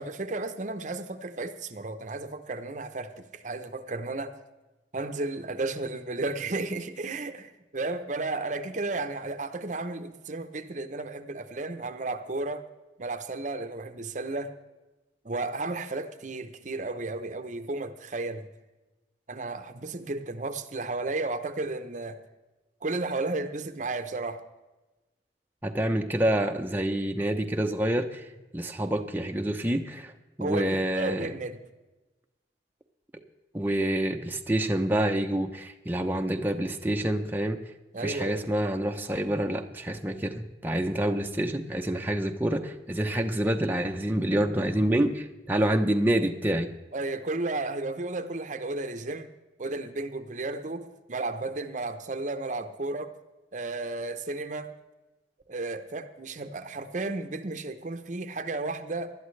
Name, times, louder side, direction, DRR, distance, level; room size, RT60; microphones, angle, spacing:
voice 1, 0.0-4.4 4.9-12.7 13.0-14.5 15.2-18.4 19.3-22.2 22.8-24.4 30.4-31.6 37.9-38.4 46.9-49.3 49.6-53.1 53.5-54.7 55.5-59.1, right 2 dB, 45° right, 10 dB, 0.8 m, -33 dB
voice 2, 25.6-30.1 30.4-31.3 33.5-37.6 38.0-46.7, right 1 dB, 10° right, 3 dB, 0.7 m, -27 dB
19.5 x 12.0 x 3.2 m, 1.1 s
head